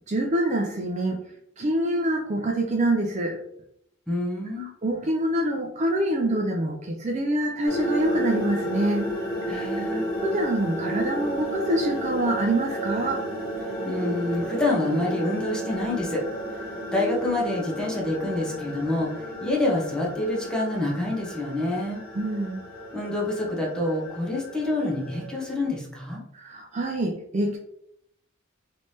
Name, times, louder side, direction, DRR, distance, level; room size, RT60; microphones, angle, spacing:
voice 1, 0.1-1.2 1.6-3.4 4.6-9.1 9.4-9.7 9.9-13.2 22.1-22.6 26.3-27.6, right 1 dB, 35° right, 2 dB, 0.4 m, -26 dB
voice 2, 4.1-4.7 9.5-10.1 13.8-16.2 16.9-22.0 22.9-26.2, left 2 dB, 5° left, -3 dB, 0.8 m, -27 dB
sound 1, 7.7-25.7, equal, 45° left, 1.4 m, -32 dB
3.3 x 3.2 x 2.7 m, 0.74 s
head